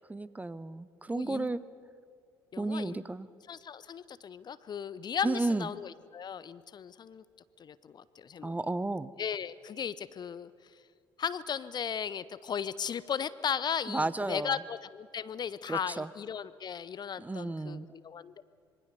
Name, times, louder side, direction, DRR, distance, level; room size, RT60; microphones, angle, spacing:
voice 1, 0.1-1.6 2.6-3.3 5.2-5.7 8.4-9.1 13.9-14.6 15.7-16.1 17.2-17.9, right 2 dB, 10° right, 17 dB, 0.8 m, -33 dB
voice 2, 1.1-1.5 2.5-3.0 3.5-7.2 7.6-8.6 9.2-10.5 11.2-18.4, left 7 dB, 35° left, 17 dB, 0.7 m, -36 dB
26.0 x 23.5 x 6.7 m, 2.2 s
figure-of-eight pair, 55°, 13 cm